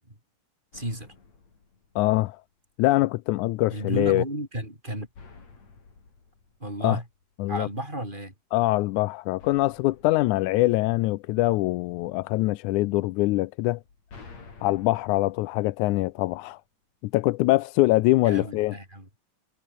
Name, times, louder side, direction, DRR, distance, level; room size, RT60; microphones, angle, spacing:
sound 1, 0.7-2.6 5.1-7.6 9.4-11.7 13.6-16.7, left 4 dB, 60° left, 6.1 m, -52 dB
voice 1, 0.7-1.1 3.7-5.1 6.6-7.0 7.5-8.3 18.2-19.1, right 1 dB, 15° right, 8.1 m, -32 dB
voice 2, 2.0-2.4 2.8-4.2 6.8-7.0 7.4-7.7 8.5-13.8 14.6-16.6 17.0-18.8, left 19 dB, 80° left, 2.0 m, -23 dB
omnidirectional pair, 3.5 m